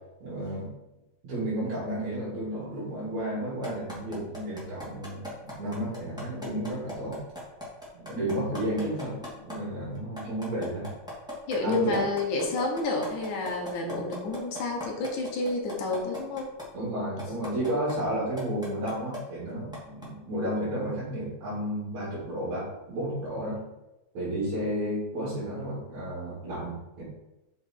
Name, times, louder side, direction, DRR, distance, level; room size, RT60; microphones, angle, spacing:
voice 1, 0.2-0.7 1.2-7.2 7.9-10.9 11.6-12.0 16.7-23.6 24.1-27.0, right 1 dB, 50° right, -8 dB, 3.8 m, -32 dB
sound 1, 3.6-9.5 9.9-16.6 17.2-17.9 18.4-19.2 19.7-20.0, equal, ahead, 1.4 m, -38 dB
voice 2, 11.5-16.5, left 3 dB, 65° left, 1 dB, 2.4 m, -29 dB
6.6 x 6.4 x 4.6 m, 0.99 s
omnidirectional pair, 4.4 m